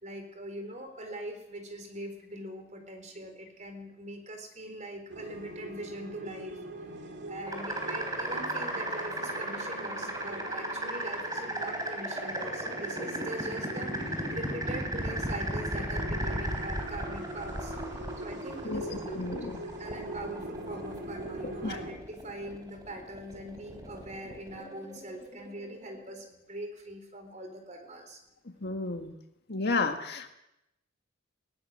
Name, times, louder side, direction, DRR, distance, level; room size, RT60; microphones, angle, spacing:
voice 1, 0.0-6.6 6.9-17.7 18.2-19.4 19.8-28.2, right 1 dB, 35° right, 5 dB, 4.2 m, -42 dB
sound 1, 5.1-21.9, right 1 dB, 55° right, 2.8 m, -42 dB
sound 2, 7.5-26.2, right 1 dB, 20° right, 4.1 m, -36 dB
voice 2, 18.6-19.6 21.4-21.8 28.6-29.1 29.5-30.3, left 3 dB, 55° left, 6 dB, 1.9 m, -32 dB
20.5 x 17.5 x 7.7 m, 0.86 s
head